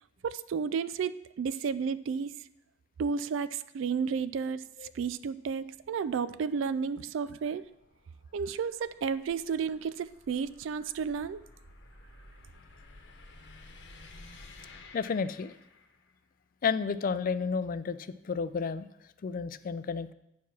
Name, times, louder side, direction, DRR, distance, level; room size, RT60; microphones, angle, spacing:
voice 1, 0.2-2.3 3.0-4.6 4.9-7.6 8.3-11.4, right 6 dB, 80° right, 15 dB, 0.3 m, -32 dB
sound 1, 4.8-16.2, left 2 dB, 70° left, 1.1 m, -54 dB
voice 2, 14.9-15.5 16.6-18.9 19.2-20.1, left 5 dB, 45° left, 14 dB, 0.4 m, -31 dB
9.4 x 4.7 x 5.9 m, 0.83 s
head